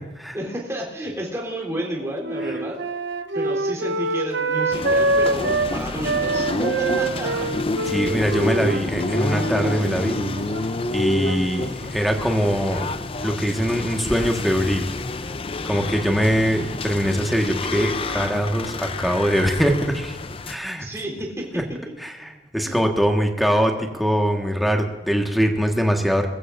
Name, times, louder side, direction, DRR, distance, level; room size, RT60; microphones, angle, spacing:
voice 1, 0.3-2.8 3.3-7.5 20.8-21.5 22.6-22.8, right 1 dB, 15° right, -2 dB, 3.6 m, -31 dB
Wind instrument woodwind instrument, 1.7-5.7 6.0-10.5, right 2 dB, 85° right, 0.9 m, -25 dB
sound 1, 4.7-20.6, left 2 dB, 30° left, 0.5 m, -29 dB
Human voice, 5.3-12.7 13.3-14.7, right 1 dB, 70° right, 4.3 m, -38 dB
voice 2, 7.9-10.2 10.9-12.9 13.2-14.9 15.6-20.2 20.5-20.9 22.0-26.3, equal, ahead, 1 dB, 1.6 m, -22 dB
22.0 x 14.5 x 2.6 m, 1.2 s
head